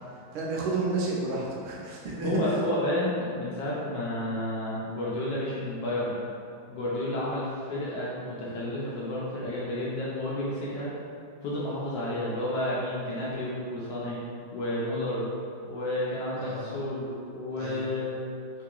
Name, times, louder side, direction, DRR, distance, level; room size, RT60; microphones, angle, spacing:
voice 1, 0.3-2.6 16.4-16.8 17.6-17.9, right 3 dB, 85° right, -4 dB, 1.5 m, -31 dB
voice 2, 2.2-6.2 6.7-10.9 11.4-14.2 14.5-15.2 15.6-18.2, left 1 dB, 75° left, -7 dB, 1.1 m, -31 dB
3.6 x 2.9 x 2.3 m, 2.4 s
omnidirectional pair, 2.3 m